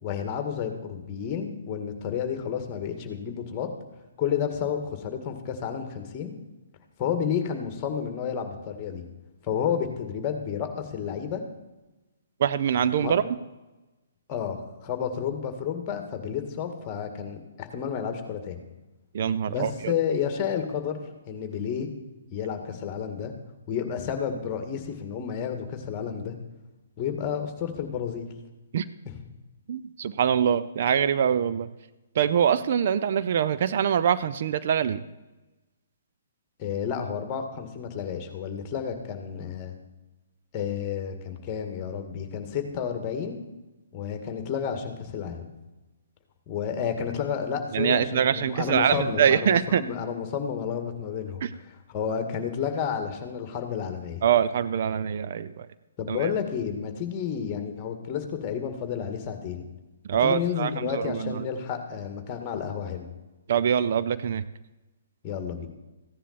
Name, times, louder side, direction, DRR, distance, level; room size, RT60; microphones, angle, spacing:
voice 1, 0.0-3.7 4.2-6.3 7.0-9.0 9.4-11.4 13.0-13.1 14.3-18.6 19.5-21.9 22.3-23.3 23.7-26.4 27.0-28.3 36.6-39.8 40.5-43.4 43.9-45.4 46.5-54.2 56.0-59.6 60.2-63.0 65.2-65.7, left 7 dB, 30° left, 6 dB, 1.9 m, -31 dB
voice 2, 12.4-13.2 19.1-19.9 28.7-28.9 29.7-31.7 32.2-35.0 47.7-49.8 51.4-51.5 54.2-55.7 56.1-56.3 60.0-61.4 63.5-64.4, right 8 dB, 50° right, 13 dB, 0.5 m, -24 dB
15.5 x 10.0 x 4.3 m, 1.1 s
figure-of-eight pair, 130°, 0 cm